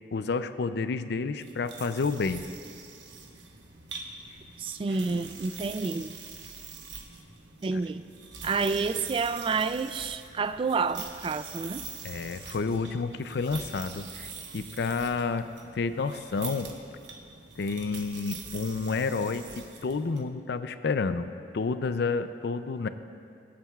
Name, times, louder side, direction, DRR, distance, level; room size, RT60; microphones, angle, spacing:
voice 1, 0.1-2.4 12.0-15.5 15.7-16.7 17.6-21.3 21.5-22.9, left 4 dB, 65° left, 11 dB, 0.4 m, -30 dB
sound 1, 1.4-20.2, right 5 dB, 85° right, 1.1 m, -44 dB
voice 2, 4.6-6.2 7.6-8.0 8.4-11.8, right 4 dB, 30° right, 12 dB, 0.3 m, -29 dB
22.5 x 8.6 x 2.4 m, 2.5 s
head